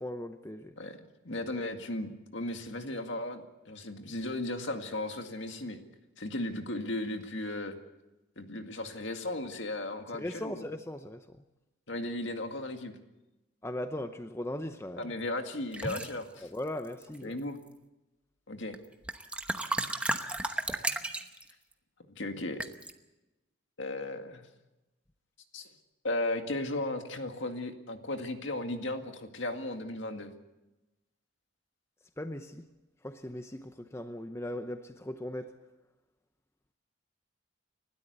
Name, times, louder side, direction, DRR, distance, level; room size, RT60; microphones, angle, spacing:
voice 1, 0.0-0.8 10.2-11.3 13.6-15.1 16.4-17.4 32.2-32.7 33.0-35.5, left 1 dB, 15° left, 0.7 m, -38 dB
voice 2, 0.8-5.8 6.2-7.7 8.4-10.6 11.9-12.9 15.0-16.5 17.2-17.6 18.5-18.8 20.5-20.6 22.2-22.6 23.8-24.4 25.5-25.7 26.0-30.3, left 2 dB, 65° left, 2.0 m, -36 dB
sound 1, 15.7-16.1 16.9-17.4 18.7-18.8 19.0-21.5 22.6-22.9, right 1 dB, 5° right, 0.9 m, -33 dB
29.5 x 13.0 x 8.2 m
head